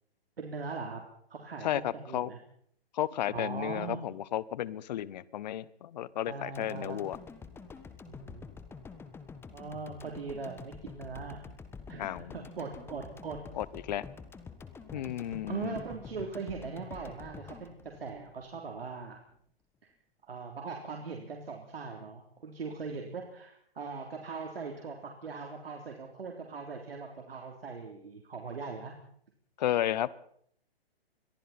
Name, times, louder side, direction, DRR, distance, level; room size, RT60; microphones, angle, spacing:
voice 1, 0.4-1.0 1.3-2.4 3.3-4.0 6.3-7.0 8.1-8.5 9.5-11.4 11.9-13.4 14.9-19.2 19.8-19.9 20.2-28.9, right 4 dB, 70° right, 2 dB, 3.5 m, -40 dB
voice 2, 1.6-2.3 2.9-7.2 12.0-12.3 13.6-14.0 14.9-15.8 29.6-30.1, left 12 dB, 45° left, 20 dB, 0.9 m, -33 dB
sound 1, 6.5-18.8 19.1-19.2, left 5 dB, 10° left, 1.3 m, -48 dB
27.0 x 22.0 x 4.3 m, 0.66 s
figure-of-eight pair, 130°, 30 cm